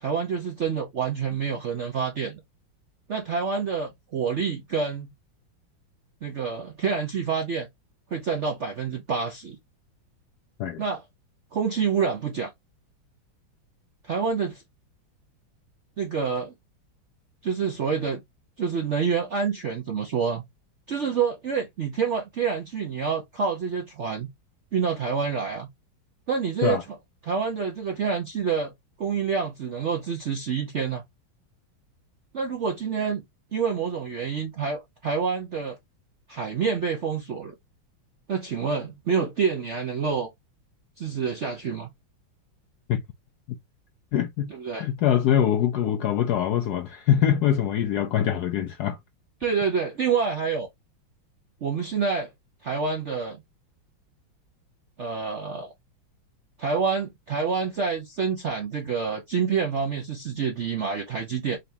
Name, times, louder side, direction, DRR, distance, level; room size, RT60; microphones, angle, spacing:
voice 1, 0.0-2.4 3.1-5.1 6.2-7.7 8.1-9.6 10.8-11.0 11.5-12.5 14.0-14.6 16.0-16.5 17.4-18.2 18.6-20.4 20.9-24.3 24.7-25.7 26.3-26.8 27.2-28.7 29.0-31.0 32.3-33.2 33.5-35.8 36.3-37.5 38.3-40.3 41.0-41.9 44.5-44.9 49.4-50.7 51.6-52.3 52.6-53.4 55.0-55.7 56.6-61.6, right 6 dB, 65° right, 0.7 m, -27 dB
voice 2, 44.1-44.5 44.8-49.0, left 10 dB, 80° left, 0.9 m, -23 dB
4.0 x 3.4 x 2.6 m
omnidirectional pair, 2.2 m